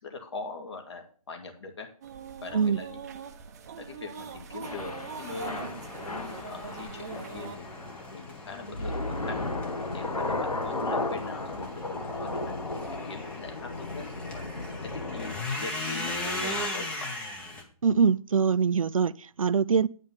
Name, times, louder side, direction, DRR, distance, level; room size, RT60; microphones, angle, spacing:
voice 1, 0.0-1.9 2.4-3.0 3.8-9.5 9.9-12.6 12.9-14.4 14.8-17.1, left 4 dB, 50° left, 2.4 m, -42 dB
sound 1, 2.0-7.6, right 6 dB, 30° right, 0.7 m, -42 dB
Thunder / Rain, 4.6-15.4, left 2 dB, 85° left, 1.7 m, -35 dB
sound 2, 5.2-17.6, left 2 dB, 5° left, 0.8 m, -39 dB
voice 2, 17.8-19.9, right 6 dB, 65° right, 0.5 m, -23 dB
9.4 x 5.3 x 7.2 m
figure-of-eight pair, 155°, 19 cm